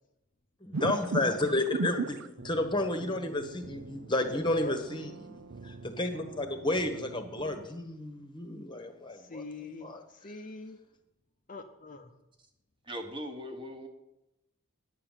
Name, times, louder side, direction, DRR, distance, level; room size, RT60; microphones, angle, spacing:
voice 1, 0.6-9.4 9.8-10.3, left 2 dB, 20° left, 7 dB, 1.2 m, -32 dB
sound 1, 0.7-7.7, right 3 dB, 60° right, 0.6 m, -39 dB
voice 2, 4.3-4.7 9.1-10.8 11.5-12.1, left 2 dB, 35° left, 5 dB, 0.7 m, -41 dB
voice 3, 12.8-13.9, equal, 20° right, 4 dB, 1.3 m, -39 dB
10.0 x 6.9 x 9.1 m, 0.90 s
head